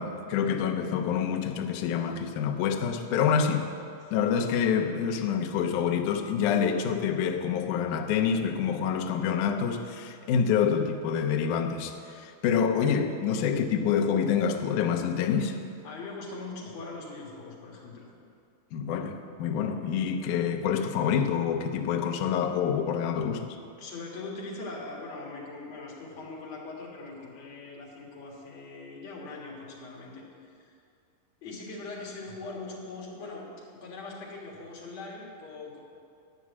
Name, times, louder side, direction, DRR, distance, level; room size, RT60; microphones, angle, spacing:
voice 1, 0.0-3.7 4.1-15.6 18.7-23.6, left 7 dB, 85° left, 4 dB, 1.7 m, -27 dB
voice 2, 15.8-18.1 23.8-30.7 31.4-35.8, left 3 dB, 50° left, -3 dB, 2.5 m, -41 dB
11.0 x 6.1 x 8.2 m, 2.3 s
omnidirectional pair, 4.6 m